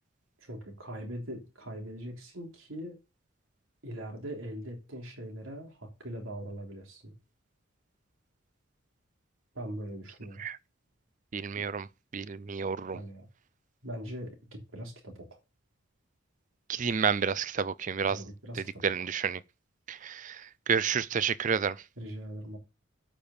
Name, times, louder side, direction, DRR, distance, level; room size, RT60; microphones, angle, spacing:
voice 1, 0.4-3.0 3.8-7.1 9.5-10.4 12.9-13.3 13.8-15.4 18.1-18.8 22.0-22.6, right 1 dB, 80° right, 3.4 m, -41 dB
voice 2, 11.3-11.9 12.1-13.0 16.7-18.2 18.8-19.4 19.9-20.4 20.7-21.8, right 6 dB, 40° right, 0.4 m, -30 dB
8.6 x 5.2 x 7.1 m
head